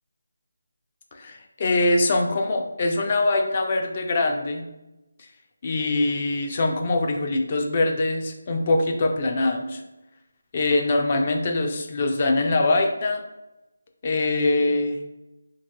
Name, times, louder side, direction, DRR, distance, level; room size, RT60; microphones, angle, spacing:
voice 1, 1.1-4.6 5.2-5.3 5.6-9.8 10.5-13.2 14.0-15.0, left 2 dB, 30° left, 3 dB, 0.3 m, -23 dB
2.8 x 2.2 x 2.8 m, 0.95 s
figure-of-eight pair, 170°, 0 cm